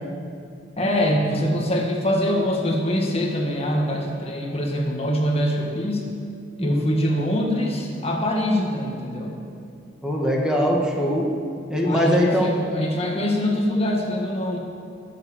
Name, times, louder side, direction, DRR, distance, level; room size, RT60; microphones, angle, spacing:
voice 1, 0.8-6.1 6.6-9.4 11.8-14.6, equal, 30° left, 0 dB, 1.8 m, -24 dB
voice 2, 6.6-6.9 10.0-11.3 11.7-12.6, equal, 5° right, -2 dB, 2.0 m, -21 dB
20.5 x 7.7 x 8.6 m, 2.5 s
head